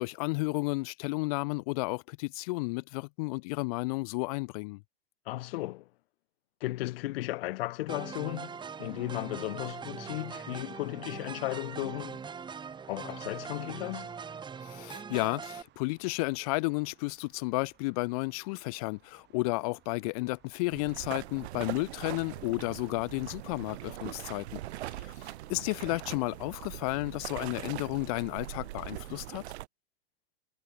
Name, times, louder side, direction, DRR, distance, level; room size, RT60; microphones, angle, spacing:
voice 1, 0.0-4.8 14.6-24.6 25.0-29.4, left 26 dB, 35° left, 0.4 m, -32 dB
voice 2, 5.3-5.9 6.6-12.3 12.9-14.1, left 18 dB, 60° left, 0.7 m, -35 dB
sound 1, 7.9-15.6, right 6 dB, 15° right, 1.6 m, -42 dB
sound 2, 11.9-23.8, right 14 dB, 30° right, 4.6 m, -64 dB
sound 3, 20.7-29.7, right 16 dB, 75° right, 0.6 m, -41 dB
hypercardioid pair, 135°, 33 cm